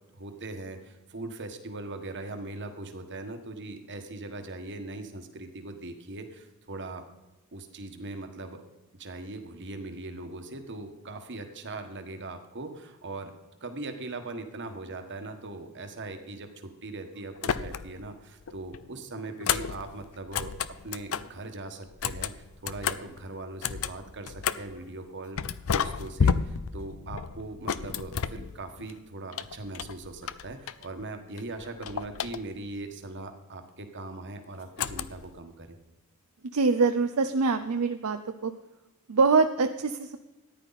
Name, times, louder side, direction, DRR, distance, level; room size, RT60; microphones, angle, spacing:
voice 1, 0.1-7.1 7.5-8.6 9.0-13.3 13.6-20.5 20.8-25.4 25.7-35.7, right 2 dB, 55° right, 6 dB, 1.5 m, -40 dB
sound 1, 17.4-18.1 18.4-21.4 21.9-24.8 25.4-28.9 29.3-31.1 31.4-32.8 34.8-35.4, left 6 dB, 65° left, 0.5 m, -32 dB
voice 2, 36.5-38.5 39.1-40.2, right 4 dB, 70° right, 7 dB, 0.6 m, -24 dB
14.0 x 10.0 x 4.1 m, 1.0 s
head